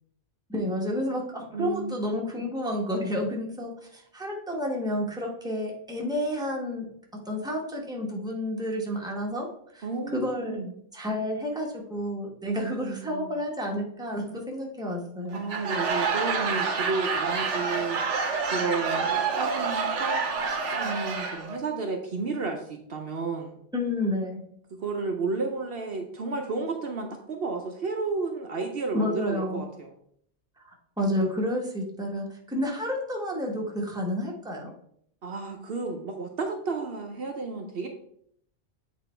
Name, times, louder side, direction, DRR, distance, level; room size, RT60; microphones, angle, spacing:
voice 1, 0.5-6.9 7.3-9.5 9.7-9.8 10.1-10.6 10.9-15.4 23.7-24.4 28.9-29.6 30.6-34.7, left 1 dB, 5° right, -1 dB, 1.1 m, -30 dB
voice 2, 1.5-2.0 9.8-10.7 12.5-13.3 15.3-18.0 18.4-20.2 20.7-23.6 24.8-29.9 35.2-37.9, right 4 dB, 60° right, 3 dB, 0.9 m, -32 dB
Laughter / Crowd, 15.3-21.6, right 5 dB, 85° right, 1.2 m, -28 dB
8.0 x 3.0 x 4.4 m, 0.67 s
omnidirectional pair, 1.2 m